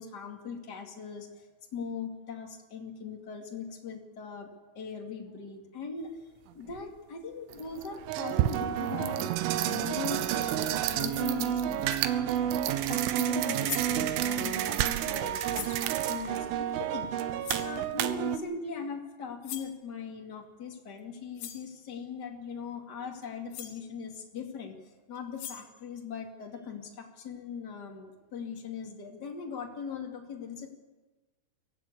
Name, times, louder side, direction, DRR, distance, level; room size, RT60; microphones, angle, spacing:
voice 1, 0.0-4.5 4.7-6.2 6.5-12.0 12.4-17.3 17.5-30.7, left 5 dB, 40° left, 1 dB, 1.5 m, -40 dB
sound 1, 6.7-6.8 7.5-18.4, right 11 dB, 80° right, 3.4 m, -30 dB
sound 2, 11.8-12.1 13.3-13.4 13.6-14.1 15.5-15.8 17.4-17.8 19.4-19.8 21.0-21.1 21.4-21.7 23.2-23.3 23.5-23.8 25.2-25.8, left 11 dB, 75° left, 4.0 m, -41 dB
23.0 x 16.0 x 8.4 m, 1.2 s
omnidirectional pair, 5.8 m